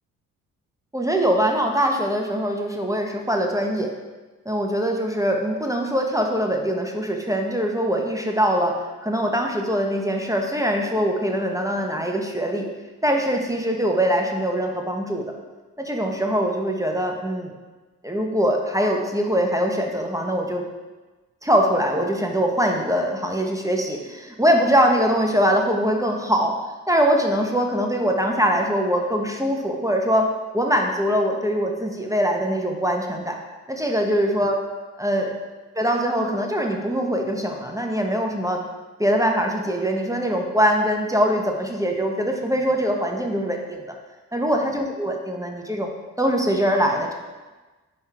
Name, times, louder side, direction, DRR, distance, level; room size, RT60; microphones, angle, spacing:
voice 1, 0.9-3.9 4.5-12.7 13.0-15.2 15.8-17.5 18.0-20.6 21.4-26.6 26.9-30.3 30.5-33.4 33.7-34.6 35.0-35.3 35.8-38.6 39.0-43.9 44.3-47.1, equal, 10° right, 1 dB, 1.0 m, -22 dB
9.3 x 3.6 x 3.4 m, 1.2 s
hypercardioid pair, 40°, 39 cm